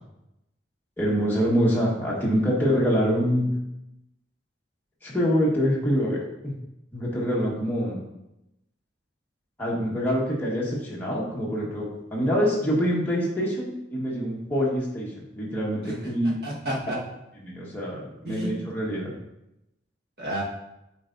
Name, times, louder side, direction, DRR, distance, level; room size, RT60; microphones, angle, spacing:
voice 1, 1.0-3.5 5.0-6.2 6.4-6.5 6.9-8.0 9.6-16.4 17.4-19.1, equal, 10° left, -6 dB, 1.5 m, -25 dB
voice 2, 16.4-17.0 18.2-18.7 20.2-20.4, right 1 dB, 60° right, -4 dB, 1.6 m, -31 dB
8.4 x 4.6 x 2.7 m, 0.88 s
head